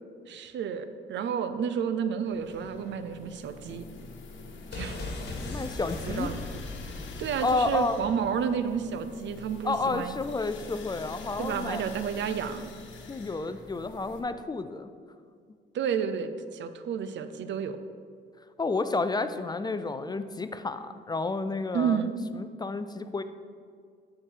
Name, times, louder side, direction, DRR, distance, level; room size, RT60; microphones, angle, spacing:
voice 1, 0.3-3.9 4.7-5.0 6.1-6.4 7.2-10.2 11.4-12.7 15.7-17.8 21.7-22.1, right 7 dB, 65° right, 10 dB, 0.6 m, -31 dB
sound 1, 2.3-14.2, left 3 dB, 70° left, 1.2 m, -45 dB
sound 2, 4.7-8.5 8.7-8.8, left 2 dB, 55° left, 1.8 m, -39 dB
voice 2, 5.4-6.3 7.4-8.1 9.6-11.8 13.1-14.9 18.6-23.2, left 3 dB, 20° left, 11 dB, 0.4 m, -31 dB
12.0 x 4.8 x 4.6 m, 2.1 s
cardioid pair, 90°, 20 cm